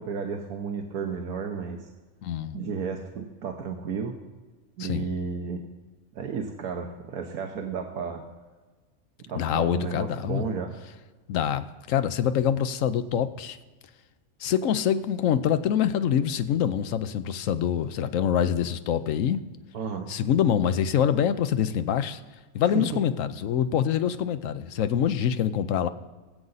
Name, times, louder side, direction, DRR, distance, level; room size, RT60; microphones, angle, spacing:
voice 1, 0.0-1.9 2.5-4.1 4.8-5.6 6.1-8.2 9.3-10.7 19.7-20.1 22.7-22.8, right 6 dB, 85° right, 4 dB, 1.4 m, -32 dB
voice 2, 2.2-2.7 4.8-5.1 9.3-10.4 11.3-13.6 14.4-19.4 20.1-22.2 22.5-25.9, left 9 dB, 65° left, 11 dB, 1.0 m, -25 dB
22.5 x 7.7 x 4.0 m, 1.3 s
omnidirectional pair, 1.5 m